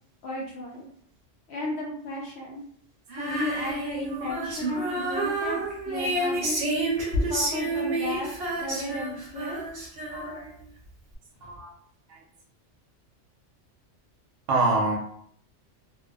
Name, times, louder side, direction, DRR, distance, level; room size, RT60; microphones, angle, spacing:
voice 1, 0.2-0.9 1.5-2.6 3.2-6.7 7.3-8.3 8.6-9.6 11.4-11.5, left 1 dB, 65° left, -3 dB, 0.8 m, -34 dB
Female singing, 3.1-10.6, right 1 dB, 60° right, 1.0 m, -29 dB
voice 2, 10.1-10.5 11.4-11.7 14.5-15.0, right 2 dB, 85° right, -3 dB, 0.9 m, -25 dB
2.5 x 2.2 x 2.3 m, 0.64 s
omnidirectional pair, 1.2 m